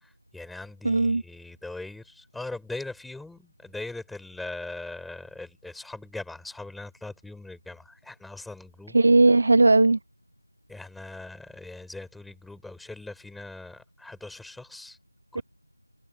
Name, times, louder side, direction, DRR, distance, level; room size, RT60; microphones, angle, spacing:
voice 1, 0.0-9.0 10.7-15.0 15.3-15.4, left 2 dB, ahead, 4.7 m, -40 dB
voice 2, 0.8-1.2 8.9-10.0 15.3-15.4, right 2 dB, 50° right, 1.6 m, -18 dB
figure-of-eight pair, 170°, 0 cm